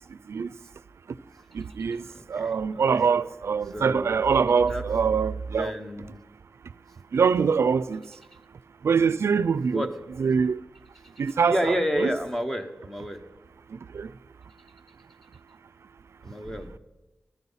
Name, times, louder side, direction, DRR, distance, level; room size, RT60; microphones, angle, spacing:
voice 1, 1.5-2.0 2.3-5.7 7.1-8.0 8.8-9.9 10.2-10.6 11.2-12.1 13.9-14.1, right 6 dB, 85° right, 0.4 m, -24 dB
voice 2, 2.1-3.1 3.7-4.2 4.7-5.1 5.5-6.2 9.7-9.9 11.4-13.2 16.2-16.8, equal, 5° left, 1.1 m, -30 dB
13.5 x 13.5 x 5.6 m
wide cardioid pair, 115°, 4 cm